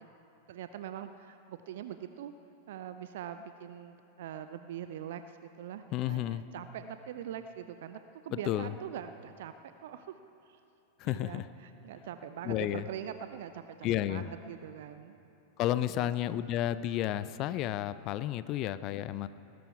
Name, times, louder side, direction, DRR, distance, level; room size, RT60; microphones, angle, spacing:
voice 1, 0.5-2.3 2.7-10.2 10.5-10.6 11.0-15.2 15.9-16.4, right 9 dB, 55° right, 10 dB, 0.4 m, -43 dB
voice 2, 5.9-6.4 8.3-8.7 11.0-11.5 12.4-12.9 13.8-14.3 15.6-19.3, left 13 dB, 40° left, 15 dB, 0.4 m, -32 dB
20.0 x 11.5 x 4.8 m, 2.9 s
figure-of-eight pair, 90°, 0 cm